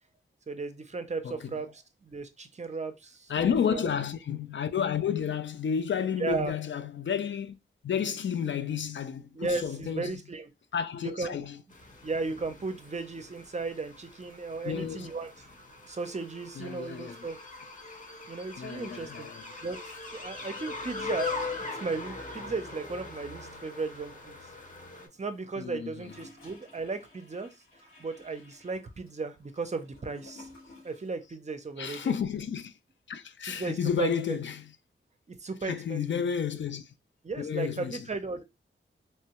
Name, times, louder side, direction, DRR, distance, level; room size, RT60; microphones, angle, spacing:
voice 1, 0.5-3.9 6.2-6.5 9.3-10.5 11.0-11.4 12.0-15.3 15.9-17.4 18.3-19.3 19.6-19.8 20.1-24.4 25.2-27.5 28.0-30.5 30.8-32.1 33.4-34.4 35.4-36.0 37.2-38.4, right 3 dB, 35° right, 0.5 m, -35 dB
voice 2, 1.2-1.6 3.3-7.6 7.8-10.1 10.7-11.6 14.6-15.1 16.6-17.2 18.6-19.4 25.6-26.1 31.8-32.7 33.1-34.7 35.6-36.9 37.4-38.1, left 7 dB, 65° left, 0.4 m, -31 dB
sound 1, 11.7-25.1, left 3 dB, 40° left, 0.8 m, -41 dB
Gurgling / Toilet flush, 25.1-31.2 31.5-31.6, left 2 dB, 85° left, 1.6 m, -54 dB
3.2 x 2.2 x 2.8 m
cardioid pair, 65°, 21 cm